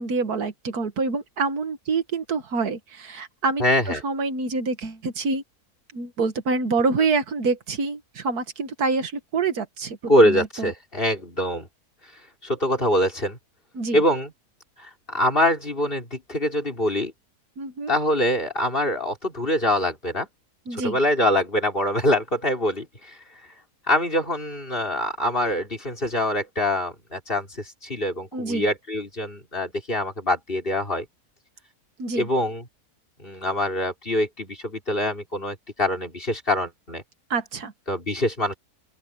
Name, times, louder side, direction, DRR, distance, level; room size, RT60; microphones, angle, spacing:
voice 1, 0.0-5.4 5.9-10.0 10.3-10.7 13.8-14.0 17.6-17.9 20.7-21.0 28.3-28.7 32.0-32.3 37.3-37.7, right 4 dB, 75° right, 2.0 m, -26 dB
voice 2, 3.6-4.0 10.1-11.7 12.4-13.4 13.9-14.3 14.8-17.1 17.9-20.3 20.7-23.2 23.9-31.1 32.2-32.6 33.2-37.0 37.9-38.5, left 1 dB, 35° left, 4.2 m, -24 dB
open air
omnidirectional pair, 1.7 m